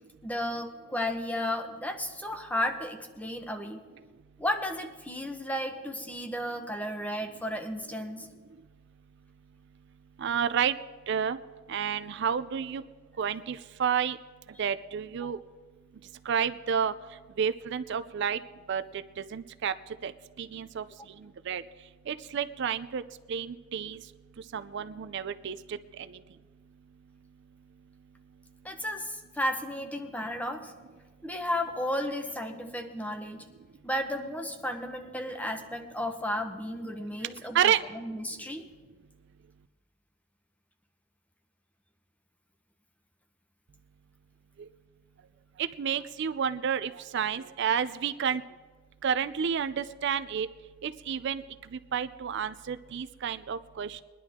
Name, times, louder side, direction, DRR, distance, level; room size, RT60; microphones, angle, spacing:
voice 1, 0.2-3.8 4.4-8.3 15.2-15.3 28.6-30.7 31.2-33.5 33.8-38.6, left 1 dB, 10° left, 5 dB, 0.9 m, -33 dB
voice 2, 10.2-10.8 11.1-11.4 11.7-12.8 13.2-14.2 14.6-15.4 16.3-16.9 17.4-18.4 18.7-18.8 19.3-19.7 20.0-20.1 20.4-20.8 21.5-21.6 22.1-23.0 23.3-24.0 24.5-25.6 26.0-26.1 37.5-37.8 44.6-44.7 45.6-48.4 49.0-50.5 50.8-51.4 51.9-54.0, right 8 dB, 60° right, 12 dB, 0.4 m, -30 dB
22.0 x 11.0 x 3.6 m, 1.4 s
head